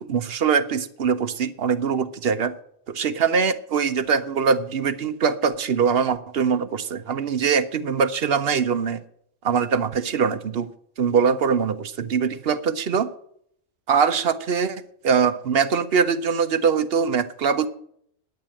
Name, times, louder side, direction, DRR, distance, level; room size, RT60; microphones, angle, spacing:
voice 1, 0.0-2.5 2.9-9.0 9.4-10.7 11.0-13.1 13.9-17.7, right 6 dB, 55° right, 12 dB, 0.9 m, -22 dB
10.5 x 8.8 x 7.5 m, 0.69 s
omnidirectional pair, 1.4 m